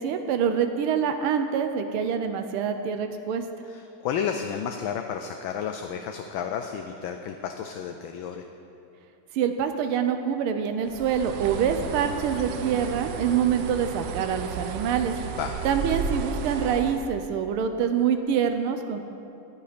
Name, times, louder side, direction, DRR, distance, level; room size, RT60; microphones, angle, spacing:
voice 1, 0.0-3.4 9.3-15.1 15.6-19.0, right 7 dB, 90° right, 7 dB, 1.6 m, -25 dB
voice 2, 3.7-8.4 15.3-15.5, left 7 dB, 75° left, 5 dB, 1.4 m, -32 dB
Bird, 10.9-17.1, right 5 dB, 65° right, 1.3 m, -33 dB
14.0 x 10.5 x 5.1 m, 2.7 s
omnidirectional pair, 2.3 m